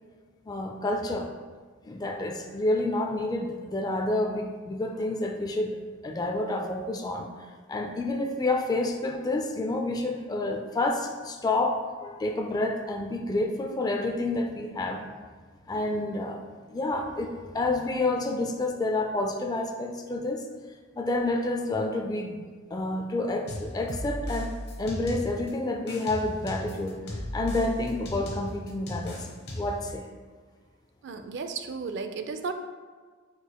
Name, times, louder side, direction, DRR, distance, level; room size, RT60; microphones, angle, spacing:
voice 1, 0.5-1.3 1.9-7.3 7.7-15.0 15.7-16.4 16.7-20.4 21.0-22.4 22.7-24.5 24.8-27.0 27.3-29.3 29.6-30.0, left 2 dB, 20° left, 3 dB, 0.4 m, -29 dB
sound 1, 23.5-25.5 25.9-29.9, left 1 dB, 55° left, 0.9 m, -36 dB
voice 2, 31.0-32.5, right 5 dB, 60° right, 7 dB, 0.4 m, -34 dB
4.8 x 4.8 x 2.2 m, 1.5 s
head